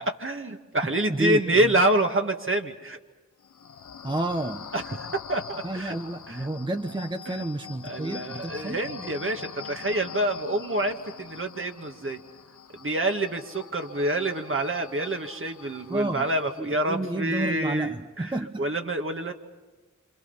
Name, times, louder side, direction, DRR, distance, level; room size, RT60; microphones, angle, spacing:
voice 1, 0.2-3.0 4.7-6.0 6.3-6.4 7.3-7.4 7.8-12.2 12.7-19.3, right 1 dB, 45° right, 4 dB, 2.0 m, -27 dB
voice 2, 1.1-1.7 4.0-4.7 5.6-8.8 15.9-16.3 16.6-18.7, right 2 dB, 15° right, 7 dB, 1.0 m, -30 dB
sound 1, 3.4-16.8, left 7 dB, 90° left, 0.8 m, -44 dB
27.0 x 26.5 x 5.7 m, 1.2 s
cardioid pair, 40°, 29 cm